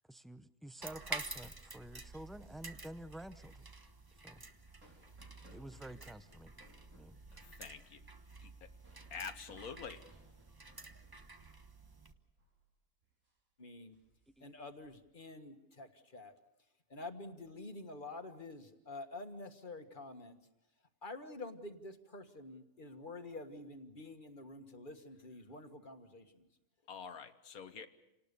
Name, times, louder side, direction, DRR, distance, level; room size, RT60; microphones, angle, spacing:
voice 1, 0.1-3.7 4.2-4.4 5.5-6.5 6.9-7.2 14.4-14.5, right 1 dB, ahead, 13 dB, 0.4 m, -50 dB
sound 1, 0.8-12.1, right 2 dB, 15° right, 1.0 m, -50 dB
sound 2, 4.1-12.1 12.4-12.6 13.0-13.3 13.8-14.9, right 2 dB, 90° right, 5.4 m, -66 dB
voice 2, 7.4-8.0 8.4-8.7 9.1-10.0 26.9-27.9, left 6 dB, 85° left, 9 dB, 1.7 m, -47 dB
voice 3, 13.6-14.0 14.4-16.3 16.9-20.4 21.0-26.5, left 2 dB, 35° left, 8 dB, 1.8 m, -48 dB
28.5 x 19.0 x 6.8 m, 0.89 s
omnidirectional pair, 1.5 m